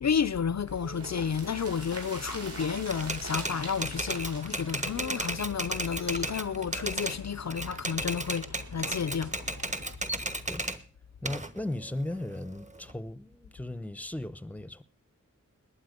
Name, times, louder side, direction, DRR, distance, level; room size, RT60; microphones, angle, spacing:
voice 1, 0.0-9.5, left 7 dB, 60° left, 0.6 m, -31 dB
sound 1, 0.7-9.9, right 5 dB, 70° right, 1.4 m, -48 dB
sound 2, 0.9-6.7 7.0-7.1 7.4-7.5, right 2 dB, 50° right, 5.8 m, -44 dB
Typewriter, 2.9-7.2 7.5-10.8 11.3-12.9, right 1 dB, 25° right, 1.3 m, -34 dB
voice 2, 11.2-14.8, left 1 dB, 5° left, 0.8 m, -37 dB
20.0 x 8.9 x 5.2 m
wide cardioid pair, 65°, 31 cm